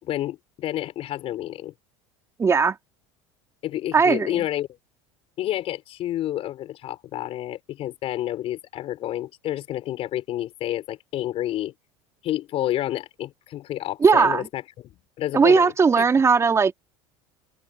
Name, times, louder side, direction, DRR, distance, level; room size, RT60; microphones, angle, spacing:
voice 1, 0.0-1.7 3.6-4.7 5.4-11.8 12.2-16.1, left 13 dB, 50° left, 5.4 m, -29 dB
voice 2, 2.4-2.8 3.9-4.3 14.0-14.5 15.3-16.7, right 5 dB, 20° right, 3.4 m, -18 dB
open air
supercardioid pair, 120°, 13 cm